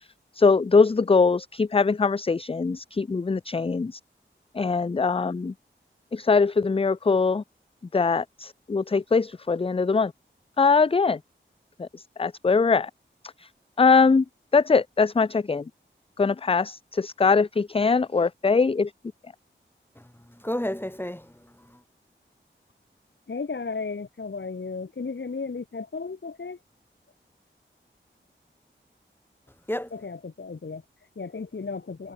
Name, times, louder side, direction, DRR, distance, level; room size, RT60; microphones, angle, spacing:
voice 1, 0.3-4.0 4.5-5.5 6.1-7.4 7.9-10.1 10.6-11.2 11.8-11.9 12.2-12.9 13.4-13.5 13.8-14.2 14.5-15.6 16.2-18.9, left 4 dB, 30° left, 0.5 m, -22 dB
voice 2, 20.0-21.8 29.7-29.9, left 1 dB, 10° left, 1.8 m, -32 dB
voice 3, 23.3-26.6 29.9-32.1, left 4 dB, 65° left, 1.7 m, -34 dB
cardioid pair, 45°, 20 cm